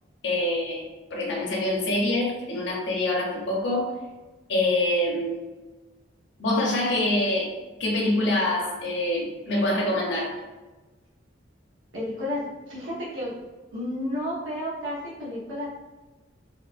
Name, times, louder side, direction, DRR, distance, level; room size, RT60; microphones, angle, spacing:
voice 1, 0.2-0.8 1.1-3.9 4.5-5.5 6.4-7.5 7.8-10.4, left 1 dB, 65° left, -2 dB, 0.6 m, -25 dB
voice 2, 11.9-12.4 12.7-13.3 13.7-15.6, left 1 dB, 80° right, -8 dB, 0.7 m, -31 dB
3.0 x 2.1 x 2.4 m, 1.2 s
head